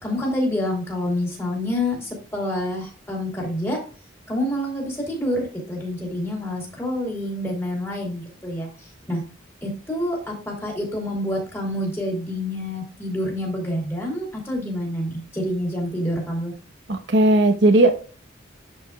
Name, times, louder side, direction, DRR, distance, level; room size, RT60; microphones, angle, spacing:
voice 1, 0.0-3.8 4.3-8.7 9.1-9.2 9.6-16.5, left 1 dB, 10° left, -1 dB, 3.3 m, -27 dB
voice 2, 16.9-17.9, right 2 dB, 60° right, 6 dB, 1.0 m, -16 dB
12.0 x 5.2 x 2.4 m, 0.37 s
head